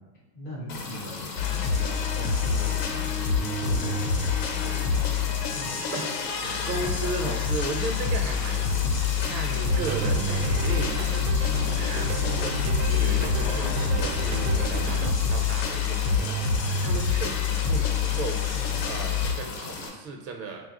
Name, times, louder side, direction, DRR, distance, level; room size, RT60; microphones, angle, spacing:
voice 1, 0.3-1.3 1.7-5.8 7.2-7.3 11.6-11.8, equal, 15° left, -14 dB, 0.3 m, -40 dB
sound 1, 0.7-19.9, left 3 dB, 45° left, 0.8 m, -37 dB
sound 2, 1.4-19.3, left 6 dB, 85° left, 0.7 m, -26 dB
voice 2, 5.9-11.2 11.7-18.4 18.9-20.7, right 3 dB, 85° right, 3 dB, 0.9 m, -36 dB
sound 3, 9.6-15.1, right 4 dB, 55° right, 0.5 m, -33 dB
2.9 x 2.3 x 3.8 m, 1.2 s
supercardioid pair, 170°, 49 cm